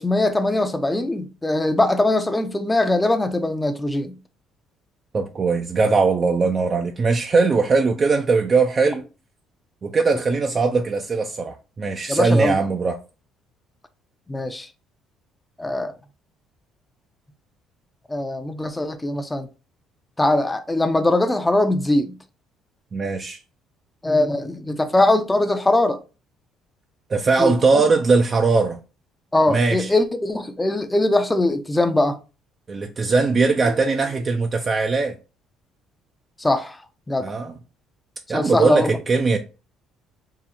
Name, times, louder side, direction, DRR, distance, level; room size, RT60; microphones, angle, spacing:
voice 1, 0.0-4.1 12.1-12.6 14.3-14.7 15.6-15.9 18.1-19.5 20.2-22.2 24.0-26.0 27.4-27.8 29.3-32.2 36.4-36.8 37.1-37.3 38.3-38.9, left 2 dB, 15° left, 0.5 m, -21 dB
voice 2, 5.1-9.1 9.8-13.0 22.9-23.4 27.1-28.8 29.5-29.9 32.7-35.2 37.2-37.5 38.3-39.4, right 4 dB, 35° right, 0.4 m, -20 dB
3.7 x 2.0 x 4.3 m
supercardioid pair, 90°, 0 cm